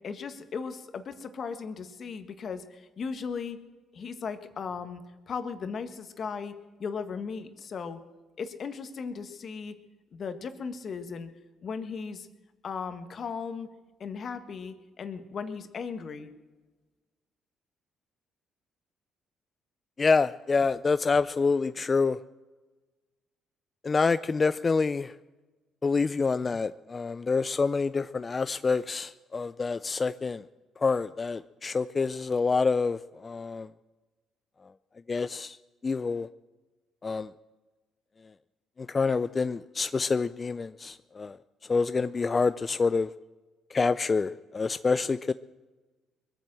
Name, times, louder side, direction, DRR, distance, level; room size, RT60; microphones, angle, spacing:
voice 1, 0.0-3.6 3.9-6.5 6.8-8.0 8.4-9.8 10.1-11.3 11.6-12.3 12.6-13.7 14.0-16.3, left 5 dB, 55° left, 9 dB, 1.5 m, -37 dB
voice 2, 20.0-22.2 23.8-25.2 25.8-30.4 30.8-33.7 35.1-35.6 35.8-36.3 37.0-37.3 38.8-41.4 41.6-43.1 43.7-45.3, left 4 dB, 35° left, 14 dB, 0.4 m, -27 dB
21.5 x 8.9 x 7.6 m, 1.2 s
supercardioid pair, 65°, 0 cm